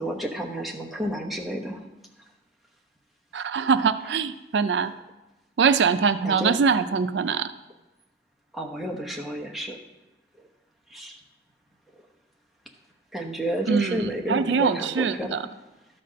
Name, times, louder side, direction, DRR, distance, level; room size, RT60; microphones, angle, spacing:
voice 1, 0.0-1.8 6.2-6.5 8.5-9.8 10.9-11.2 13.1-15.4, right 1 dB, ahead, -1 dB, 0.9 m, -30 dB
voice 2, 3.3-4.9 5.6-7.5 13.7-15.4, right 5 dB, 85° right, 11 dB, 0.4 m, -23 dB
12.5 x 4.3 x 6.3 m, 1.0 s
head